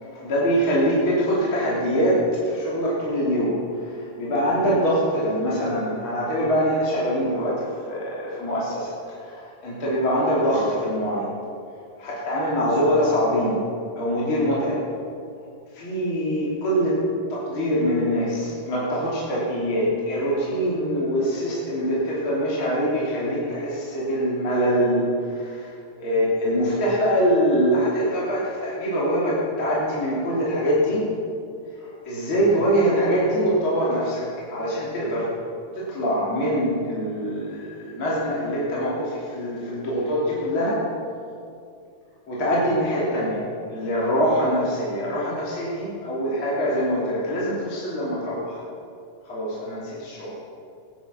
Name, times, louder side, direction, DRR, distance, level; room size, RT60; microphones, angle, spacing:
voice 1, 0.0-11.3 12.0-13.6 14.0-14.8 15.7-17.0 17.3-25.7 26.0-31.0 31.8-35.3 35.7-40.8 42.3-43.4 43.7-48.7 49.2-50.3, equal, 40° left, -7 dB, 3.7 m, -24 dB
19.5 x 10.5 x 6.1 m, 2.4 s
omnidirectional pair, 3.6 m